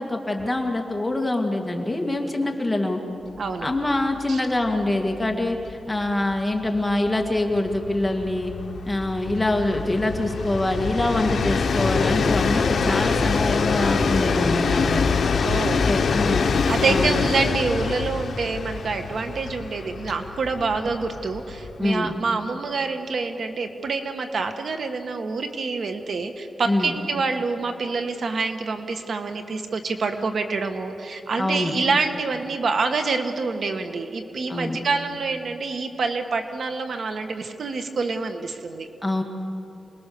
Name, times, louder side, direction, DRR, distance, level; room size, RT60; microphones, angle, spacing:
voice 1, 0.0-3.0 3.6-8.5 8.8-15.0 15.8-16.5 16.8-17.2 21.8-22.1 26.7-26.9 31.4-31.7 34.5-34.8 39.0-39.2, left 2 dB, 10° left, 2 dB, 2.3 m, -24 dB
voice 2, 3.4-3.7 4.3-4.4 15.4-15.8 16.7-38.9, right 4 dB, 65° right, 6 dB, 1.4 m, -27 dB
Train, 3.7-3.8 4.2-4.3 4.6-22.0, left 5 dB, 70° left, 1.2 m, -25 dB
27.0 x 20.5 x 7.0 m, 2.8 s
wide cardioid pair, 135°, 0 cm